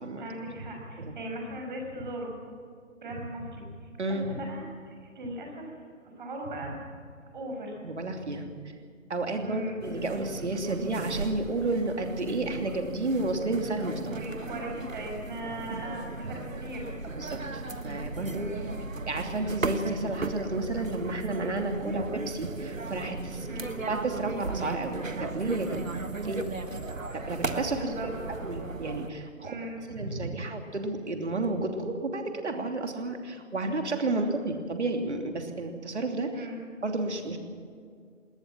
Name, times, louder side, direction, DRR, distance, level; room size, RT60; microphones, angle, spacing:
voice 1, 0.2-2.3 3.0-3.9 4.3-5.7 6.2-6.8 7.3-7.8 9.4-9.8 14.1-16.9 18.3-18.7 23.5-23.7 27.7-28.1 29.4-30.4 34.2-34.3 36.3-36.6, right 1 dB, 40° right, 1 dB, 5.7 m, -38 dB
voice 2, 7.8-8.5 9.1-14.2 17.0-18.5 19.1-23.5 23.9-26.0 26.2-26.5 27.1-27.9 28.3-29.6 29.9-36.5 36.8-37.4, right 2 dB, 60° right, 4 dB, 3.0 m, -32 dB
sound 1, 9.8-29.1, right 3 dB, 75° right, 1.6 m, -36 dB
21.0 x 18.5 x 7.5 m, 2.2 s
figure-of-eight pair, 145°, 39 cm